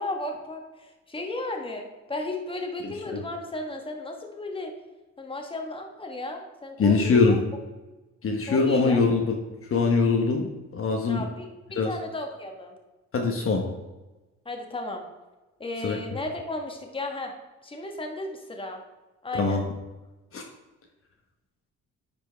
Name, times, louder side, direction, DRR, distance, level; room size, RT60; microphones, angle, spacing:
voice 1, 0.0-4.7 5.2-7.4 8.5-9.0 11.1-12.7 14.4-15.0 15.6-17.3 17.6-18.8 19.2-19.6, left 2 dB, 15° left, 3 dB, 1.3 m, -34 dB
voice 2, 2.8-3.2 6.8-7.4 8.2-9.4 9.7-11.2 11.7-11.9 13.1-13.7 15.8-16.0 19.3-19.6 20.3-20.4, left 4 dB, 45° left, 2 dB, 1.0 m, -23 dB
9.9 x 4.5 x 3.4 m, 1.1 s
cardioid pair, 90°, 30 cm